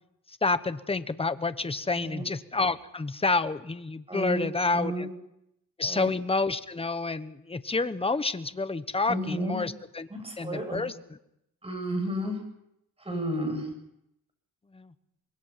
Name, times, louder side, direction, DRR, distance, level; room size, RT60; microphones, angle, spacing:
voice 1, 0.4-5.1 5.8-10.1 10.4-10.9 14.7-14.9, left 3 dB, 15° left, 13 dB, 1.1 m, -29 dB
voice 2, 4.1-4.5 4.7-5.1 5.8-6.1 9.1-9.6 10.1-10.8 11.6-12.4 13.0-13.7, right 1 dB, 15° right, 4 dB, 7.9 m, -32 dB
25.5 x 21.5 x 5.8 m, 0.81 s
cardioid pair, 105°, 35 cm